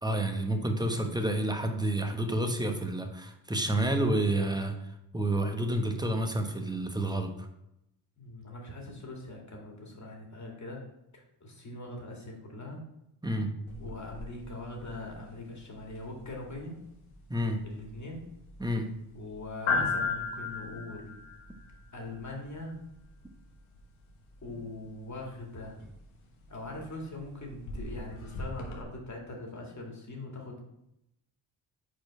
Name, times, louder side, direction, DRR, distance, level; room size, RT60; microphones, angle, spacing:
voice 1, 0.0-4.8 5.1-7.5 13.2-13.5 17.3-17.6 18.6-18.9, right 1 dB, 10° right, 5 dB, 1.1 m, -29 dB
voice 2, 8.2-10.8 11.1-12.8 13.8-16.8 17.6-18.3 19.1-21.2 21.9-22.8 24.4-25.9 26.5-30.6, left 2 dB, 35° left, 0 dB, 2.2 m, -42 dB
sound 1, 13.7-28.8, left 4 dB, 75° left, 1.2 m, -39 dB
5.2 x 4.4 x 4.8 m, 0.83 s
supercardioid pair, 50°, 49 cm